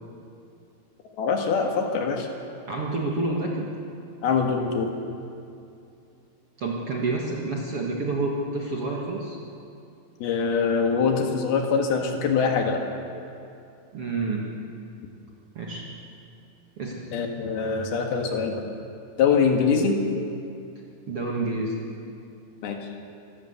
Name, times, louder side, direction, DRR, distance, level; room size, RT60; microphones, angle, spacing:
voice 1, 1.2-2.3 4.2-4.9 10.2-12.8 17.1-18.7 19.2-20.0 22.6-22.8, left 5 dB, 70° left, 3 dB, 3.5 m, -23 dB
voice 2, 2.7-3.7 6.6-9.4 13.9-14.5 15.6-15.9 16.8-17.1 21.1-21.8, right 2 dB, 50° right, -2 dB, 1.9 m, -28 dB
25.0 x 13.0 x 8.1 m, 2.5 s
omnidirectional pair, 4.8 m